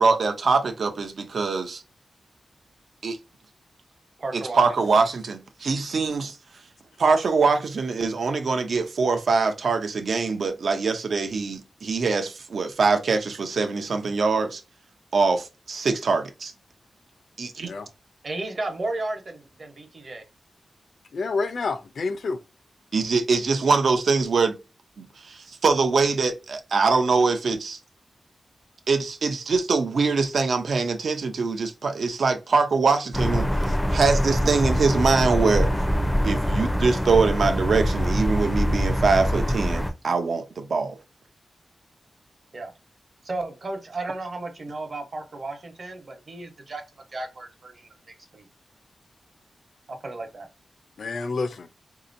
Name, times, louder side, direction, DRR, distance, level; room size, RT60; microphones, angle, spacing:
voice 1, 0.0-1.8 3.0-3.2 4.3-6.4 7.0-14.6 15.1-16.5 17.4-17.7 22.9-24.6 25.0-27.8 28.9-35.7 36.2-41.0, right 4 dB, 70° right, 0.6 m, -23 dB
voice 2, 4.2-4.6 18.2-20.2 42.5-42.7 43.2-46.8 47.1-47.9 48.3-48.5 49.9-50.5, right 2 dB, 50° right, 1.0 m, -33 dB
voice 3, 21.1-22.4 51.0-51.7, left 4 dB, 70° left, 0.5 m, -28 dB
sound 1, 33.1-39.9, equal, 5° left, 0.5 m, -24 dB
4.1 x 2.8 x 2.6 m
wide cardioid pair, 115°, 0 cm